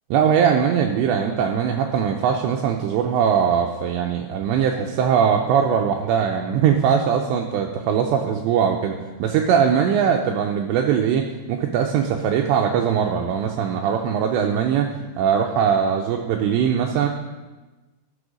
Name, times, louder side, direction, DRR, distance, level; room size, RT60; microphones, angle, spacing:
voice 1, 0.1-14.9 15.2-17.1, right 7 dB, 85° right, 3 dB, 2.5 m, -21 dB
13.5 x 4.6 x 5.0 m, 1.2 s
omnidirectional pair, 5.6 m